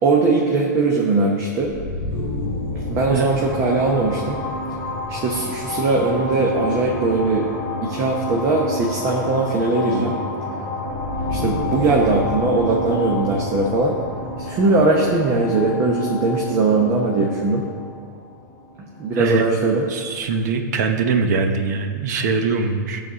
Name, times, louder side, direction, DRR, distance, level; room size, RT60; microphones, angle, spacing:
voice 1, 0.0-1.7 2.9-4.4 5.1-7.5 7.8-10.2 11.3-14.0 14.4-17.7 19.0-19.9, right 3 dB, 25° right, -2 dB, 1.0 m, -20 dB
sound 1, 1.6-19.3, left 2 dB, 20° left, 1.8 m, -29 dB
voice 2, 19.9-23.0, right 4 dB, 60° right, 6 dB, 0.9 m, -22 dB
12.0 x 4.2 x 6.9 m, 2.2 s
supercardioid pair, 155°, 10 cm